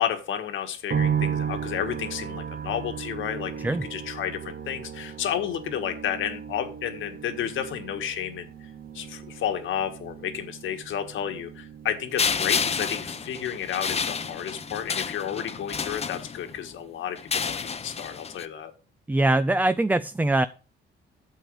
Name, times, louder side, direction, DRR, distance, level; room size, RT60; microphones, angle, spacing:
voice 1, 0.0-8.5 8.9-18.7, left 9 dB, 80° left, 7 dB, 1.6 m, -31 dB
sound 1, 0.9-16.1 16.4-17.3, right 7 dB, 50° right, 1.0 m, -36 dB
sound 2, 12.2-16.6 17.2-18.5, left 5 dB, 30° left, 0.8 m, -30 dB
voice 2, 19.1-20.5, right 2 dB, 10° right, 13 dB, 0.4 m, -22 dB
9.3 x 6.9 x 4.8 m, 0.36 s
cardioid pair, 90°, 20 cm